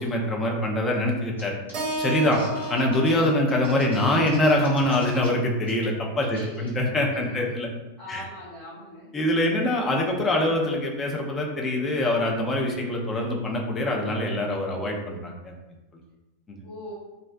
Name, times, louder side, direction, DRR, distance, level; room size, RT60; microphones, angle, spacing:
voice 1, 0.0-1.5 2.0-2.4 2.7-7.7 8.1-8.2 9.1-15.5 16.5-16.6, left 1 dB, 20° left, 0 dB, 0.4 m, -24 dB
sound 1, 1.4-1.5 1.7-5.3 5.6-5.9 6.2-6.7, left 1 dB, 80° left, 1.0 m, -41 dB
Keyboard (musical), 1.7-6.0, right 2 dB, 35° right, 0.7 m, -35 dB
voice 2, 2.3-2.6 6.3-6.8 7.1-7.5 8.0-9.4 16.6-16.9, equal, 45° left, -9 dB, 1.2 m, -41 dB
2.5 x 2.1 x 2.3 m, 1.1 s
figure-of-eight pair, 90°, 0 cm